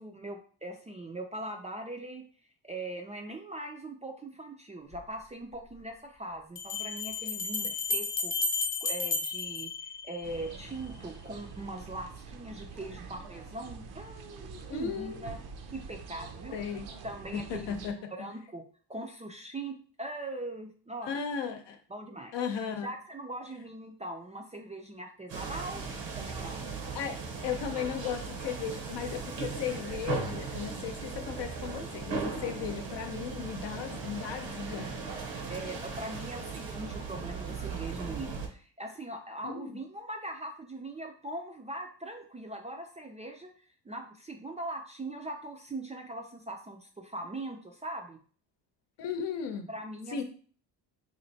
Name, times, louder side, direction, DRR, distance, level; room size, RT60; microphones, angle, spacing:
voice 1, 0.0-2.2 2.6-8.3 8.8-15.4 15.7-16.6 17.0-18.6 18.9-21.1 21.9-22.3 22.8-26.6 32.4-32.6 35.5-43.5 43.9-48.2 49.7-50.2, right 2 dB, 15° right, 3 dB, 0.4 m, -41 dB
Bell, 4.9-5.0 6.6-10.5, left 3 dB, 30° left, 0.8 m, -32 dB
sound 1, 10.2-17.9, right 5 dB, 60° right, 0.7 m, -46 dB
voice 2, 14.7-15.2 16.5-16.9 17.3-18.1 21.0-21.8 22.3-22.9 26.9-34.9 39.4-39.8 49.0-49.7 50.1-50.2, left 7 dB, 70° left, 6 dB, 0.8 m, -36 dB
sound 2, 25.3-38.5, right 4 dB, 75° right, 1.0 m, -38 dB
3.1 x 2.5 x 4.0 m, 0.42 s
cardioid pair, 105°, 44 cm